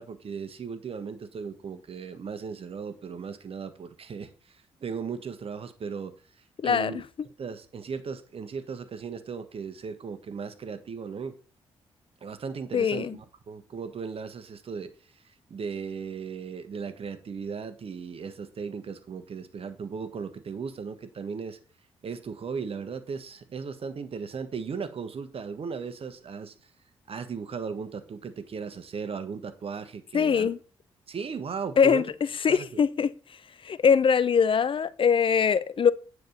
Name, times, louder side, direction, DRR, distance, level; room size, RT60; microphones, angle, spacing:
voice 1, 0.0-6.2 6.6-7.0 7.4-11.4 12.2-14.9 15.5-21.6 22.0-26.5 27.1-30.5 31.1-32.1 32.5-32.7, right 5 dB, 50° right, 1.4 m, -37 dB
voice 2, 6.6-6.9 12.7-13.2 30.1-30.6 31.8-32.1 32.4-33.1 33.6-35.9, left 6 dB, 45° left, 0.6 m, -22 dB
9.3 x 4.7 x 7.1 m
hypercardioid pair, 45°, 12 cm